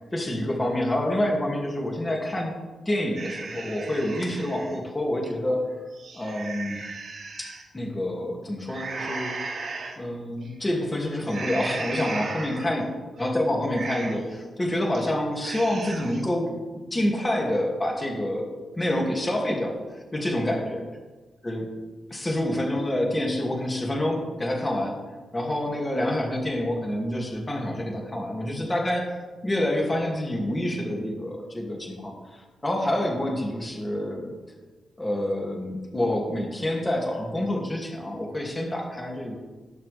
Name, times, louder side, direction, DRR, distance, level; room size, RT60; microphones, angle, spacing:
voice 1, 0.1-2.5 2.9-5.8 6.1-6.8 7.4-9.4 10.0-12.8 13.2-16.5 16.9-19.8 20.1-20.8 21.4-21.7 22.1-25.0 25.3-29.1 29.4-34.3 35.0-39.4, left 1 dB, 20° left, 0 dB, 2.6 m, -27 dB
sound 1, 3.2-4.8 5.2-5.3 5.8-7.6 8.7-10.0 10.4-10.8 11.3-12.8 13.2-13.3 13.6-14.4 14.7-15.1 15.4-16.3, right 3 dB, 60° right, 2.4 m, -36 dB
19.0 x 6.5 x 3.6 m, 1.3 s
cardioid pair, 70°, 0 cm